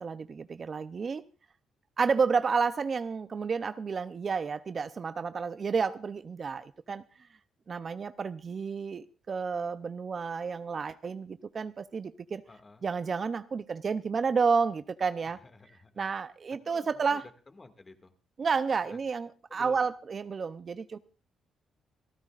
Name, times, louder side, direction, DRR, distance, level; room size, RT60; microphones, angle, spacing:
voice 1, 0.0-1.2 2.0-7.0 7.7-12.4 12.8-15.4 16.0-17.2 18.4-21.0, right 5 dB, 40° right, 0.6 m, -31 dB
voice 2, 12.5-12.9 15.2-16.1 16.7-18.1 18.8-19.0 19.5-19.9, left 3 dB, 25° left, 2.1 m, -53 dB
28.5 x 14.0 x 2.5 m
cardioid pair, 90°, 0 cm